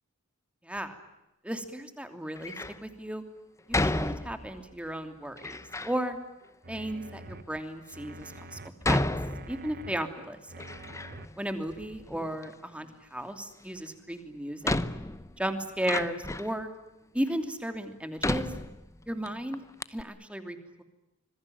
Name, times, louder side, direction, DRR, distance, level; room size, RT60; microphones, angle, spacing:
voice 1, 0.6-0.9 1.4-2.6 2.8-3.2 3.7-5.6 5.8-6.2 6.7-8.6 8.8-9.0 9.5-10.4 11.4-14.8 15.4-16.7 17.1-18.5 19.1-19.6 19.9-20.8, right 1 dB, 5° right, 7 dB, 2.9 m, -34 dB
Door, 2.3-2.8 3.7-4.7 5.4-6.0 6.8-6.9 7.6-7.7 8.8-10.0 10.3-11.4 11.7-12.5 13.9-14.0 14.6-16.6 17.3-17.4 18.2-19.3 19.5-19.6 19.8-20.0, left 2 dB, 15° left, 0.9 m, -32 dB
sound 1, 6.6-7.4 7.9-8.7 9.2-10.0 10.5-11.3 11.8-11.9, right 2 dB, 45° right, 1.4 m, -46 dB
26.0 x 22.0 x 9.3 m, 0.95 s
head